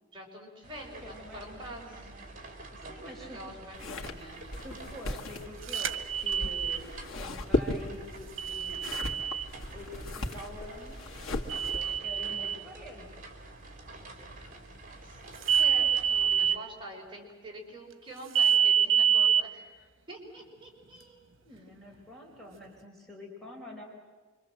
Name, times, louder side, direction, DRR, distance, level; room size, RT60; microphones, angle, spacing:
voice 1, 0.1-2.1 2.5-4.6 14.4-14.6 15.0-15.2 15.6-21.2, right 1 dB, 25° right, -2 dB, 5.3 m, -46 dB
sound 1, 0.6-16.6, right 2 dB, 45° right, 4.2 m, -48 dB
voice 2, 0.8-2.2 2.7-3.4 4.6-8.8 9.7-13.2 21.4-23.8, left 1 dB, ahead, -2 dB, 4.9 m, -47 dB
sound 2, 3.7-12.0, left 1 dB, 85° left, 2.0 m, -36 dB
sound 3, 5.7-6.8 8.4-9.5 11.5-12.6 15.4-16.6 18.3-19.4, right 8 dB, 75° right, 1.3 m, -26 dB
26.0 x 25.0 x 7.7 m, 1.4 s
head